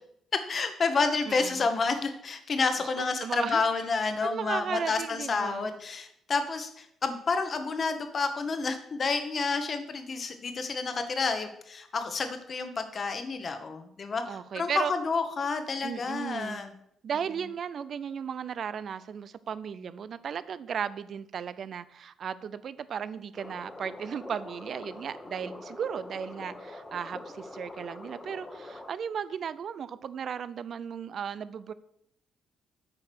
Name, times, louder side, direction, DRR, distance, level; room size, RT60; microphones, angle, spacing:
voice 1, 0.5-16.7, left 4 dB, 45° left, 8 dB, 1.1 m, -30 dB
voice 2, 1.3-1.7 3.0-3.6 4.2-5.7 14.3-14.9 15.8-16.6 17.0-31.7, right 7 dB, 55° right, 16 dB, 0.5 m, -35 dB
sound 1, 23.4-28.9, left 2 dB, 20° left, 1.1 m, -44 dB
8.5 x 4.8 x 6.3 m, 0.74 s
cardioid pair, 90°, 0 cm